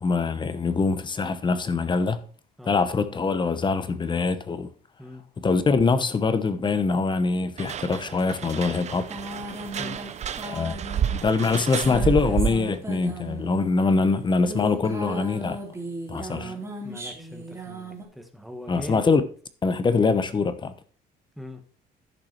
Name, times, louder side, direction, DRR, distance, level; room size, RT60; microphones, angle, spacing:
voice 1, 0.0-2.3 2.6-4.7 5.4-9.1 10.4-15.6 16.1-16.5 18.7-19.2 19.6-20.7, left 4 dB, 25° left, 1.0 m, -24 dB
sound 1, 7.6-12.8, right 9 dB, 40° right, 0.7 m, -30 dB
sound 2, 8.7-13.8 14.3-18.0, right 1 dB, 15° right, 2.9 m, -37 dB
voice 2, 16.3-19.0 21.3-21.6, equal, ahead, 1.5 m, -41 dB
11.0 x 6.0 x 4.5 m
cardioid pair, 110°, 17 cm